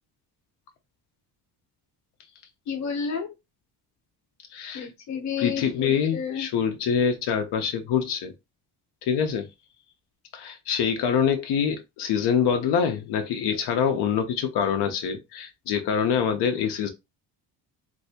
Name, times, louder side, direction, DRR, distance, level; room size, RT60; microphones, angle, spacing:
voice 1, 2.7-3.3 4.7-6.5, left 6 dB, 45° left, 0.8 m, -31 dB
voice 2, 4.5-4.9 5.4-8.3 9.0-9.5 10.3-16.9, left 7 dB, 80° left, 0.6 m, -25 dB
3.2 x 2.7 x 2.7 m
cardioid pair, 160°, 39 cm